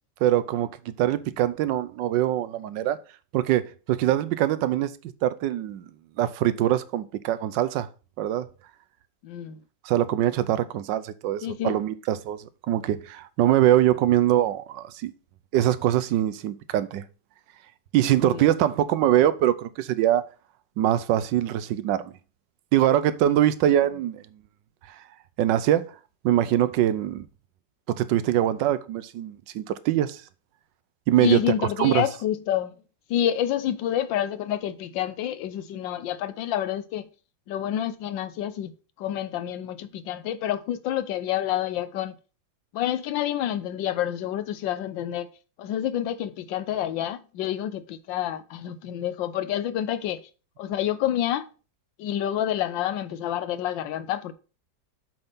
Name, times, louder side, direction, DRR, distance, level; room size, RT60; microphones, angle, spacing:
voice 1, 0.2-3.0 3.3-4.9 5.2-5.9 6.2-7.9 8.2-8.5 9.8-15.1 15.5-17.0 17.9-20.3 20.8-22.1 22.7-24.2 25.4-25.9 26.2-27.2 27.9-30.2 31.1-31.4 31.8-32.0, right 12 dB, 80° right, 1.3 m, -23 dB
voice 2, 9.2-9.6 11.4-11.8 18.2-18.5 31.2-32.7 33.1-37.1 37.5-38.7 39.0-42.1 42.7-45.3 45.6-50.2 50.6-51.5 52.0-54.3, left 11 dB, 85° left, 1.4 m, -28 dB
7.9 x 3.6 x 5.5 m
omnidirectional pair, 2.0 m